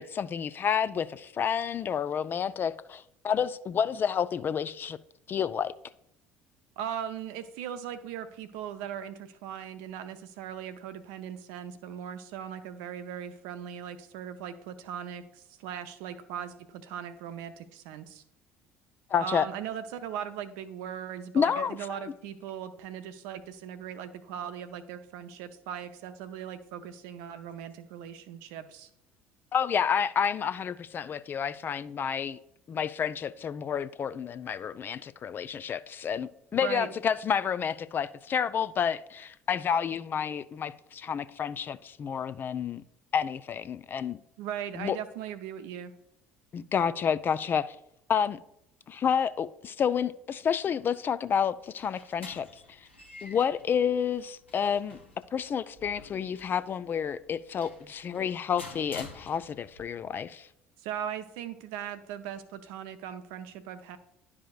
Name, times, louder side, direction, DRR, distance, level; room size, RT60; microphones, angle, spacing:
voice 1, 0.0-5.0 5.3-5.7 19.1-19.5 21.3-22.0 29.5-32.4 32.7-42.8 43.1-44.2 44.8-45.0 46.5-47.8 48.1-48.4 48.9-52.8 53.2-55.0 55.3-60.5, left 7 dB, 35° left, 0.3 m, -29 dB
voice 2, 6.8-18.2 19.2-28.9 36.6-36.9 44.4-45.9 60.8-64.0, right 9 dB, 60° right, 0.6 m, -39 dB
sound 1, 51.4-59.8, left 3 dB, 85° left, 0.8 m, -50 dB
11.0 x 4.9 x 2.3 m
figure-of-eight pair, 60°, 6 cm